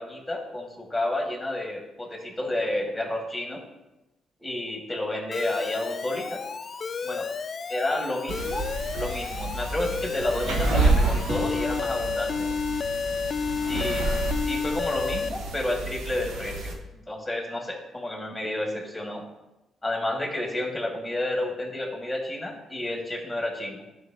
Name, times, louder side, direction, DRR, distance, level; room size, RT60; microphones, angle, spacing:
voice 1, 0.0-3.6 4.4-6.4 7.0-7.3 7.7-8.7 8.9-12.5 13.7-14.1 14.5-19.2 19.8-23.8, left 1 dB, 10° left, 0 dB, 2.1 m, -30 dB
Alarm, 5.3-15.3, left 5 dB, 45° left, 0.3 m, -31 dB
sound 1, 8.3-16.7, right 3 dB, 85° right, 1.3 m, -29 dB
11.5 x 5.5 x 2.9 m, 1.0 s
cardioid pair, 90°, 0 cm